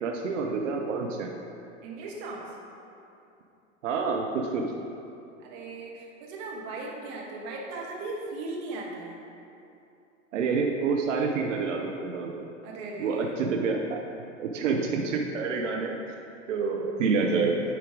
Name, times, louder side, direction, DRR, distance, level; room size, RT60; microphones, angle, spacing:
voice 1, 0.0-1.3 3.8-4.6 10.3-12.5 13.0-14.0 14.4-16.0 16.5-17.6, right 4 dB, 70° right, 1 dB, 0.7 m, -28 dB
voice 2, 1.8-2.6 5.4-9.2 12.6-13.3, right 2 dB, 50° right, -2 dB, 1.5 m, -38 dB
9.3 x 4.5 x 3.7 m, 2.7 s
hypercardioid pair, 95°, 38 cm